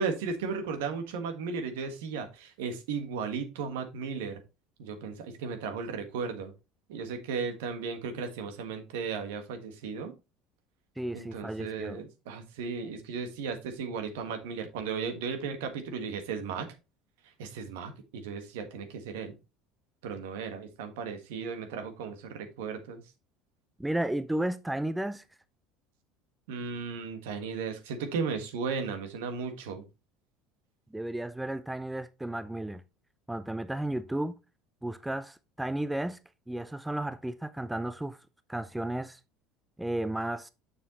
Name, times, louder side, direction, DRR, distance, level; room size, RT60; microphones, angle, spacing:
voice 1, 0.0-4.4 4.8-6.5 6.9-10.1 11.1-16.7 17.4-19.4 20.0-23.0 26.5-29.8, right 5 dB, 75° right, 1.5 m, -35 dB
voice 2, 11.0-12.0 23.8-25.2 30.9-32.8 33.3-34.3 34.8-36.2 36.5-38.2 38.5-39.2 39.8-40.5, right 1 dB, 5° right, 0.5 m, -33 dB
7.0 x 6.7 x 3.0 m
hypercardioid pair, 75°, 0 cm